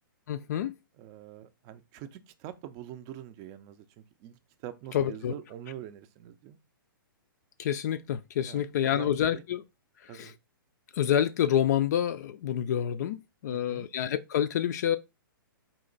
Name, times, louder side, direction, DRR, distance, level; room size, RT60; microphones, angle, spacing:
voice 1, 0.3-0.7 4.9-5.3 7.6-9.6 10.0-10.3 10.9-15.0, left 10 dB, 50° left, 0.4 m, -28 dB
voice 2, 1.0-6.6 8.5-9.4 10.1-10.3 13.5-13.9, right 11 dB, 25° right, 0.4 m, -45 dB
4.3 x 2.9 x 3.9 m
hypercardioid pair, 150°, 12 cm